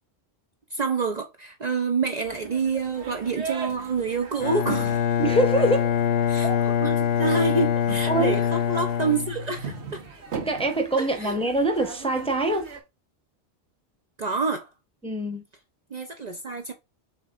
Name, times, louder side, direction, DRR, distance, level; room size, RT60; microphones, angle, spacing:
voice 1, 0.7-5.0 6.3-6.5 6.8-10.0 11.0-11.3 14.2-14.7 15.9-16.7, right 4 dB, 45° right, 0.7 m, -27 dB
sound 1, 2.2-12.8, right 5 dB, 85° right, 1.5 m, -39 dB
Bowed string instrument, 4.4-9.9, left 9 dB, 70° left, 0.8 m, -24 dB
voice 2, 5.2-5.9 6.4-6.6 8.1-8.4 10.3-12.7 15.0-15.4, right 1 dB, 5° left, 0.7 m, -24 dB
6.4 x 2.9 x 2.4 m
omnidirectional pair, 1.1 m